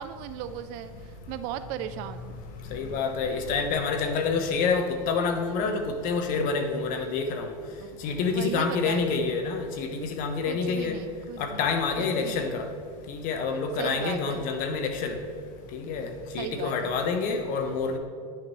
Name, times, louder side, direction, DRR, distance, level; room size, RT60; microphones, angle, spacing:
voice 1, 0.0-2.4 7.8-9.2 10.5-11.7 12.0-12.5 13.8-14.5 16.4-17.0, right 10 dB, 45° right, 12 dB, 0.4 m, -37 dB
voice 2, 2.7-7.5 8.0-11.0 11.4-12.6 13.1-15.1 15.7-18.0, left 5 dB, 45° left, 6 dB, 1.0 m, -27 dB
9.9 x 6.4 x 3.1 m, 2.1 s
supercardioid pair, 120°, 19 cm